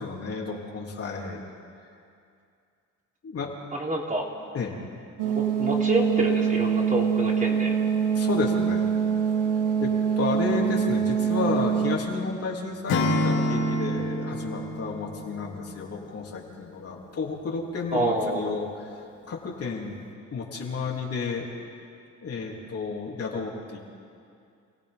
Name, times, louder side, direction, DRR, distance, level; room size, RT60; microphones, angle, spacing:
voice 1, 0.0-1.4 3.2-3.5 4.5-4.8 8.1-8.9 9.8-18.9 19.2-20.0 20.3-21.5 22.2-23.8, left 4 dB, 50° left, -2 dB, 3.5 m, -32 dB
voice 2, 3.7-4.3 5.2-5.3 5.6-7.8 17.9-18.4, right 2 dB, 25° right, -2 dB, 3.8 m, -27 dB
sound 1, 5.2-12.0, right 7 dB, 90° right, 1.6 m, -24 dB
Acoustic guitar / Strum, 12.9-16.0, left 1 dB, 85° left, 2.9 m, -27 dB
28.5 x 17.0 x 5.4 m, 2.4 s
cardioid pair, 90°, 30 cm